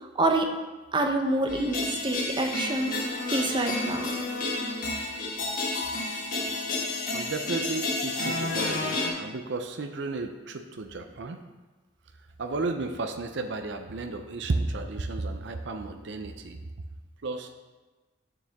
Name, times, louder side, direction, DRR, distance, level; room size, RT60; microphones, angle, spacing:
voice 1, 0.2-0.5 0.9-3.0 3.3-4.1, right 2 dB, 25° right, 3 dB, 0.8 m, -27 dB
sound 1, 1.5-9.1, left 2 dB, 45° left, 1.6 m, -30 dB
voice 2, 7.1-11.4 12.4-16.6 17.2-17.5, right 3 dB, 65° right, 5 dB, 0.6 m, -33 dB
8.8 x 7.0 x 3.5 m, 1.2 s
head